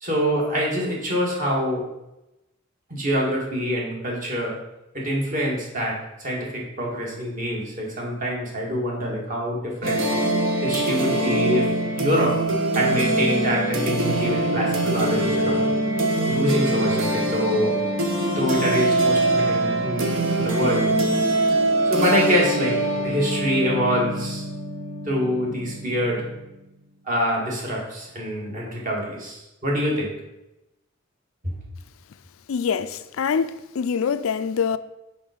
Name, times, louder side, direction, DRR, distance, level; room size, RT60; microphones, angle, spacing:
voice 1, 0.0-1.9 2.9-4.6 4.9-10.0 10.6-15.6 16.3-17.8 18.3-20.9 21.9-24.5 25.1-26.3 27.1-30.2 31.4-31.6, equal, 40° right, 1.7 m, -25 dB
sound 1, 9.8-26.4, right 1 dB, 70° right, 1.0 m, -23 dB
voice 2, 32.5-34.8, left 6 dB, 80° left, 0.4 m, -24 dB
5.4 x 5.3 x 5.0 m
head